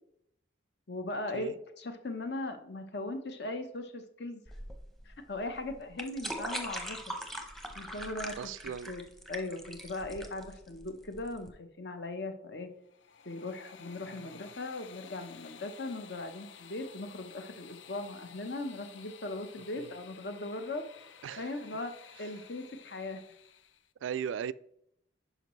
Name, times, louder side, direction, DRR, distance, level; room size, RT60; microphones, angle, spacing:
voice 1, 0.9-4.4 5.1-7.1 7.7-8.4 8.9-9.0 9.3-12.7 13.2-20.8 21.4-23.2, left 2 dB, 60° left, 0.9 m, -39 dB
sound 1, 4.5-11.5, right 1 dB, ahead, 0.8 m, -41 dB
voice 2, 8.4-8.9 14.1-14.4 19.8-19.9 21.2-21.5 24.0-24.5, right 8 dB, 80° right, 0.3 m, -37 dB
sound 2, 12.8-23.9, left 7 dB, 80° left, 0.5 m, -53 dB
11.0 x 5.1 x 3.1 m
head